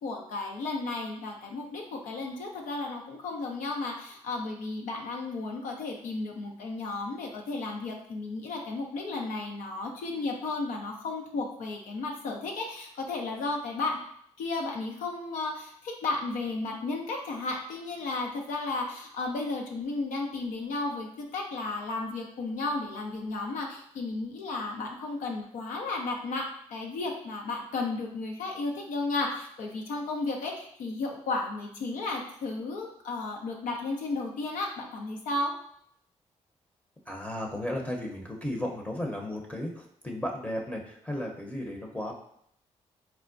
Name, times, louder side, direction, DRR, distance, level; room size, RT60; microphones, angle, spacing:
voice 1, 0.0-14.0 14.4-26.5 26.7-35.5, left 3 dB, 80° left, 1 dB, 0.5 m, -33 dB
voice 2, 37.1-42.1, left 1 dB, 10° left, 0 dB, 0.6 m, -34 dB
4.3 x 2.1 x 2.5 m, 0.68 s
supercardioid pair, 55°, 13 cm